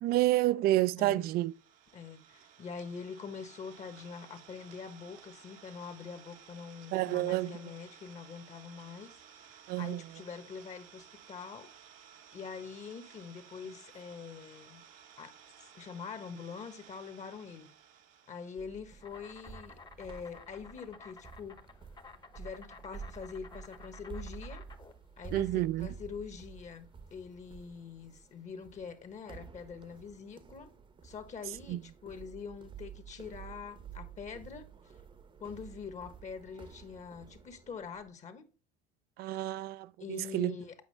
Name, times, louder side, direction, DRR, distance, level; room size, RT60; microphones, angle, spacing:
voice 1, 0.0-1.5 6.9-7.5 9.7-10.0 25.3-25.9 31.7-31.8 39.2-40.6, right 16 dB, 55° right, 0.4 m, -29 dB
voice 2, 1.0-1.3 1.9-11.7 12.3-14.8 15.2-15.3 15.7-17.7 18.3-21.6 22.3-24.6 25.2-30.7 31.0-34.7 35.4-38.5 39.4-39.6 40.0-40.7, left 6 dB, 40° left, 1.3 m, -44 dB
Idling, 1.1-18.8, right 8 dB, 80° right, 1.1 m, -56 dB
sound 1, 18.6-38.1, right 6 dB, 25° right, 0.8 m, -50 dB
Insect, 19.0-29.0, left 4 dB, 25° left, 1.0 m, -54 dB
8.3 x 4.8 x 3.2 m
supercardioid pair, 95°, 19 cm